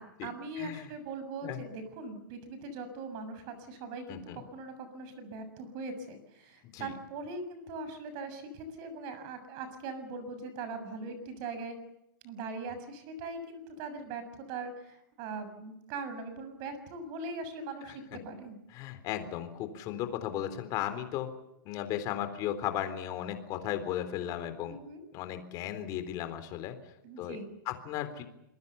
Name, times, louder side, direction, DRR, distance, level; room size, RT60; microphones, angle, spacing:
voice 1, 0.0-11.8 12.2-18.6 24.7-25.0 27.0-27.5, right 3 dB, 35° right, 10 dB, 6.9 m, -41 dB
voice 2, 0.6-0.9 1.4-1.6 4.1-4.4 6.7-6.9 18.7-21.3 21.7-24.8 25.1-26.8 27.2-27.4 27.7-28.2, left 11 dB, 30° left, 10 dB, 3.8 m, -35 dB
26.5 x 21.5 x 7.1 m, 0.85 s
hypercardioid pair, 150°, 11 cm